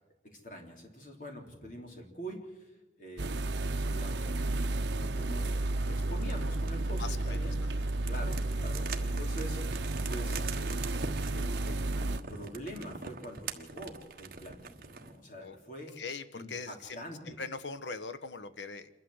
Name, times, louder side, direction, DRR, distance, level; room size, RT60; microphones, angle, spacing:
voice 1, 0.2-2.7 3.0-7.8 8.1-9.8 10.1-10.9 11.3-15.9 16.3-17.4, equal, 45° left, 1 dB, 3.7 m, -45 dB
sound 1, 3.2-12.2, right 2 dB, 80° right, 0.8 m, -32 dB
sound 2, 5.1-15.2, right 5 dB, 50° right, 1.3 m, -45 dB
voice 2, 7.0-7.8 15.4-15.6 16.0-18.9, left 4 dB, 85° left, 12 dB, 1.1 m, -42 dB
28.0 x 12.0 x 7.9 m, 1.1 s
head